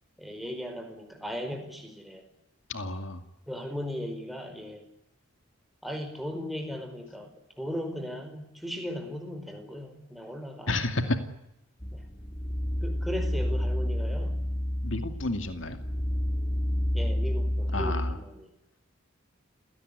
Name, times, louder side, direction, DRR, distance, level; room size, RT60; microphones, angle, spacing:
voice 1, 0.2-2.3 3.5-4.8 5.8-10.7 11.9-12.0 12.8-14.4 16.9-18.5, equal, ahead, 5 dB, 4.7 m, -37 dB
voice 2, 2.7-3.2 10.7-11.2 14.8-15.8 17.7-18.2, left 2 dB, 65° left, 8 dB, 2.4 m, -30 dB
sound 1, 11.8-18.1, left 1 dB, 20° left, 2.0 m, -29 dB
29.5 x 18.0 x 10.0 m, 0.85 s
head